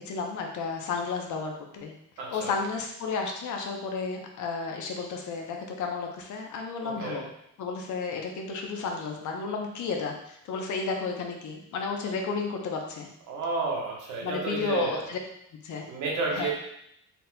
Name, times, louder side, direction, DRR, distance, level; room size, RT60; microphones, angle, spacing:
voice 1, 0.0-1.9 2.3-7.3 7.6-13.1 14.2-15.2 15.6-15.9 16.3-16.5, left 4 dB, 75° left, 2 dB, 0.8 m, -32 dB
voice 2, 2.2-2.5 6.8-7.2 13.3-15.0 15.9-16.5, right 3 dB, 85° right, -2 dB, 1.2 m, -31 dB
4.1 x 4.0 x 2.2 m, 0.75 s
cardioid pair, 90°, 30 cm